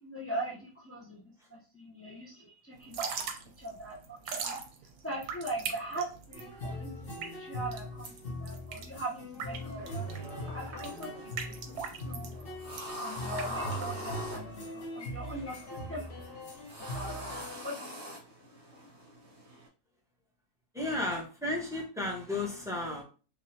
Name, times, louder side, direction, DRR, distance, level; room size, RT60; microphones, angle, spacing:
voice 1, 0.0-1.2 1.5-3.2 3.6-4.0 4.2-4.6 5.0-7.1 7.4-8.1 8.4-12.3 13.0-16.1 16.8-17.3 17.6-17.9, right 2 dB, 20° left, -6 dB, 0.3 m, -41 dB
Drip / Trickle dribble, 2.8-14.4, right 6 dB, 85° right, 1.2 m, -41 dB
sound 1, 6.3-17.6, equal, 40° left, 1.1 m, -41 dB
whipped cream, 9.5-19.7, left 1 dB, 50° right, 1.6 m, -44 dB
voice 2, 20.7-23.0, left 2 dB, 5° right, -2 dB, 0.9 m, -33 dB
3.8 x 3.1 x 2.7 m, 0.36 s
omnidirectional pair, 1.5 m